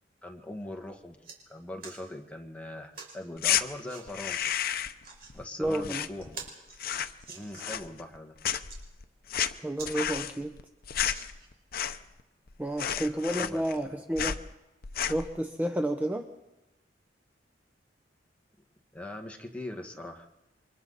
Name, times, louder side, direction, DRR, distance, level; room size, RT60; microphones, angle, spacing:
voice 1, 0.2-1.2 1.5-4.4 5.3-6.4 7.3-8.3 13.0-13.6 14.1-14.2 18.9-20.3, left 1 dB, 10° left, 2 dB, 1.8 m, -41 dB
sound 1, 1.2-1.4 1.8-2.0 2.9-3.2 3.9-4.1 4.8-5.3 5.8-5.9 6.2-7.9 8.5-8.8 9.4-9.5 9.8-9.9 10.3-10.4 10.9-11.6 12.3-12.4, right 5 dB, 60° right, 5.2 m, -46 dB
sound 2, 3.4-3.6 4.1-5.0 5.3-6.5 6.7-7.2 7.5-8.2 8.4-12.2 12.5-12.6 12.8-13.9 14.2-14.4 14.8-15.3, left 9 dB, 55° left, 0.7 m, -31 dB
voice 2, 5.6-6.1 9.6-10.5 12.6-14.4 15.1-16.3, right 1 dB, 10° right, 5 dB, 0.8 m, -30 dB
29.0 x 24.0 x 4.2 m, 1.0 s
head